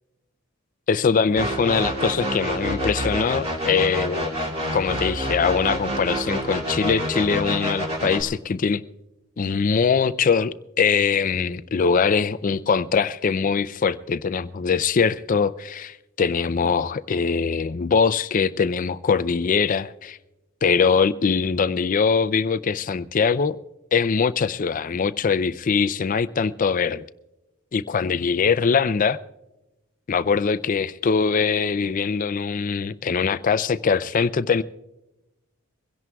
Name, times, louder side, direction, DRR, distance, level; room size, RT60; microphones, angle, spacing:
voice 1, 0.9-8.8 9.4-20.2 20.6-23.6 23.9-27.1 27.7-29.2 30.1-34.6, left 5 dB, 40° left, 0.4 m, -22 dB
sound 1, 1.4-8.2, equal, 30° right, 2.5 m, -27 dB
23.0 x 17.0 x 2.3 m
head